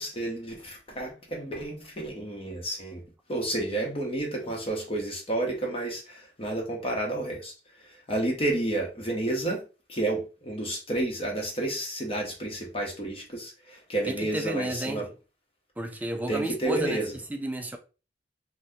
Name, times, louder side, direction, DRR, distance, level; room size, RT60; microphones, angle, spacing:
voice 1, 0.0-3.0 3.3-7.5 8.1-9.6 9.9-15.0 16.3-17.1, right 2 dB, 35° left, 0.9 m, -30 dB
voice 2, 14.0-15.1 15.8-17.0 17.3-17.8, right 1 dB, 10° right, 0.4 m, -32 dB
2.7 x 2.2 x 3.4 m
head